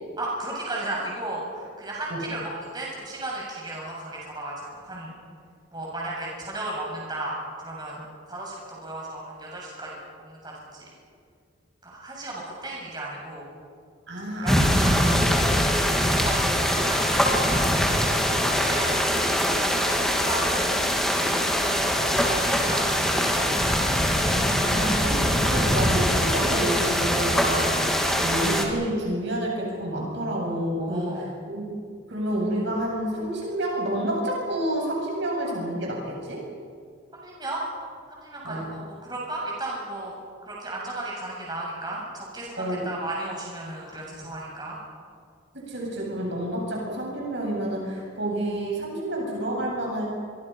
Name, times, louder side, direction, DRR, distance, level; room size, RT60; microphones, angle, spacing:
voice 1, 0.2-5.1 5.7-10.9 11.8-13.5 14.4-19.2 19.7-20.8 21.5-23.5 30.8-31.4 37.1-37.6 38.1-40.1 40.5-44.8, right 2 dB, 20° right, -4 dB, 7.6 m, -35 dB
voice 2, 14.1-14.9 16.2-16.3 24.3-31.7 32.1-36.4 38.4-38.7 42.6-42.9 45.5-50.1, right 1 dB, 60° right, -1 dB, 7.9 m, -29 dB
sound 1, 14.5-28.6, equal, ahead, 2.8 m, -23 dB
29.0 x 24.5 x 5.9 m, 2.1 s
head